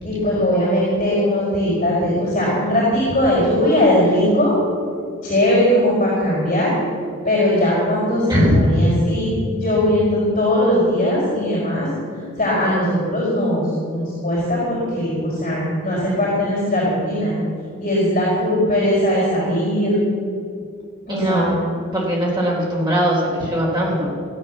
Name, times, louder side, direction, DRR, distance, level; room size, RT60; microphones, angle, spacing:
voice 1, 0.0-4.6 5.2-6.8 7.2-11.9 12.4-17.3 17.8-20.0 21.1-21.6, left 1 dB, 35° left, -8 dB, 4.7 m, -19 dB
voice 2, 8.3-8.6 21.1-21.6 21.9-24.1, equal, 20° right, -4 dB, 3.8 m, -20 dB
15.5 x 9.8 x 7.2 m, 2.4 s
head